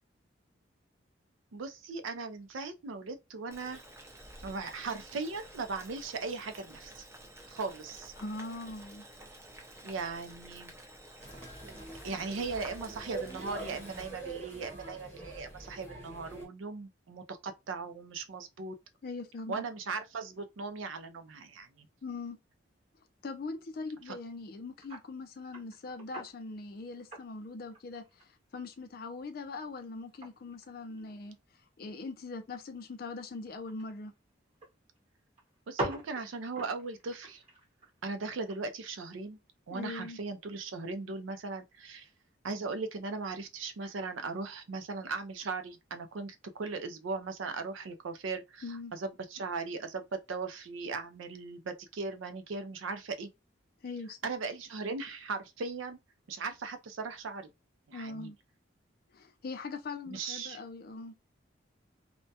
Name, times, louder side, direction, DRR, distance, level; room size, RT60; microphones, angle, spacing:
voice 1, 1.5-3.8 4.4-7.1 7.5-8.1 9.8-10.7 12.0-18.7 19.5-21.9 24.1-24.2 35.7-37.4 38.0-39.4 39.7-42.1 42.4-53.3 54.2-56.0 56.3-57.5 57.9-58.3 60.1-60.6, right 4 dB, 85° right, 0.4 m, -38 dB
Boiling, 3.5-14.1, right 1 dB, 15° right, 0.4 m, -51 dB
voice 2, 8.2-9.0 19.0-19.6 22.0-22.4 23.2-31.4 31.8-34.1 39.7-40.2 48.6-48.9 53.8-54.3 57.9-58.4 59.1-61.2, left 3 dB, 50° left, 0.4 m, -41 dB
sound 1, 11.2-16.5, right 3 dB, 10° left, 0.8 m, -44 dB
sound 2, 24.0-24.2 24.8-25.1 25.4-26.5 26.9-28.4 28.7-28.8 29.2-31.3 31.6-31.9 32.3-32.4 32.6-32.7 33.7-34.7 35.0-35.1 35.4-38.7 39.1-39.2, right 1 dB, 30° right, 0.9 m, -42 dB
2.2 x 2.1 x 2.7 m
head